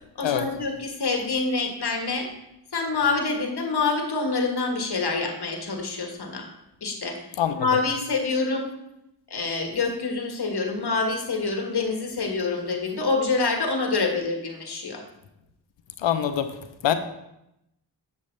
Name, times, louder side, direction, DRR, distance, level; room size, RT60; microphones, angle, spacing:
voice 1, 0.2-2.3 2.7-6.5 6.8-7.3 7.5-8.7 9.3-15.0, left 4 dB, 60° left, 3 dB, 1.6 m, -26 dB
voice 2, 16.0-16.5 16.8-16.9, left 10 dB, 85° left, 9 dB, 0.7 m, -23 dB
7.1 x 7.1 x 3.2 m, 0.85 s
cardioid pair, 45°, 44 cm